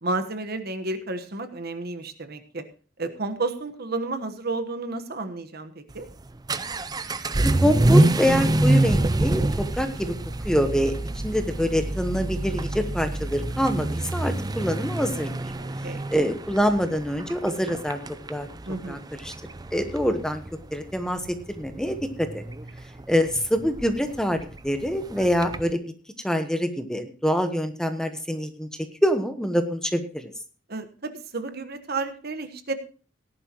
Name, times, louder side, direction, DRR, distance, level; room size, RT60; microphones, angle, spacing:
voice 1, 0.0-2.7 3.0-6.1 15.6-16.0 18.7-19.0 30.7-32.7, right 3 dB, 50° right, 9 dB, 1.3 m, -31 dB
Vehicle / Accelerating revving vroom, 5.9-25.7, right 1 dB, 20° right, 0.5 m, -27 dB
voice 2, 7.4-10.2 10.4-10.9 11.2-15.3 16.1-18.0 18.3-18.5 18.9-19.0 19.2-19.3 19.7-20.4 20.7-22.4 23.1-25.8 26.2-28.7 29.0-30.3, equal, 5° left, 7 dB, 1.1 m, -25 dB
18.0 x 11.0 x 3.0 m, 0.37 s
head